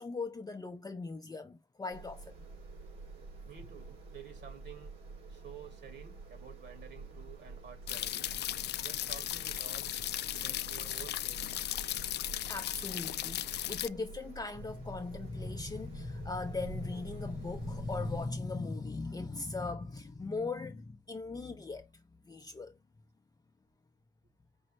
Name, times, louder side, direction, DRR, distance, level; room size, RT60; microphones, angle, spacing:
voice 1, 0.0-2.3 12.5-22.8, left 3 dB, 20° left, 0.6 m, -39 dB
sound 1, 1.9-18.3, right 3 dB, 85° right, 2.6 m, -49 dB
voice 2, 3.4-5.0 5.3-8.3 8.8-9.9 10.3-11.6, right 8 dB, 60° right, 2.4 m, -51 dB
sound 2, 7.9-13.9, left 13 dB, 60° left, 0.4 m, -36 dB
5.4 x 2.6 x 3.1 m
cardioid pair, 90°, 20 cm